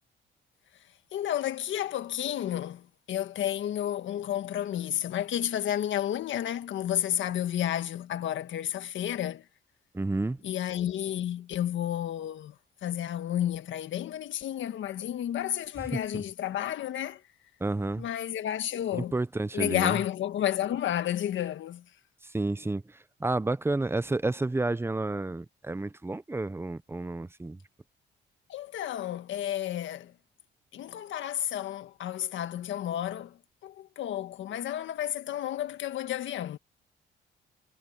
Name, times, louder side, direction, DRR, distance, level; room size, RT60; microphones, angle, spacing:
voice 1, 1.1-9.4 10.4-12.5 12.8-17.2 18.0-19.1 19.5-21.8 28.5-30.1 30.7-33.4 33.6-36.6, left 11 dB, 75° left, 1.6 m, -31 dB
voice 2, 9.9-10.4 16.1-16.2 17.6-18.1 18.9-20.0 22.2-27.6, right 2 dB, 10° right, 0.8 m, -30 dB
cardioid pair, 90°, 20 cm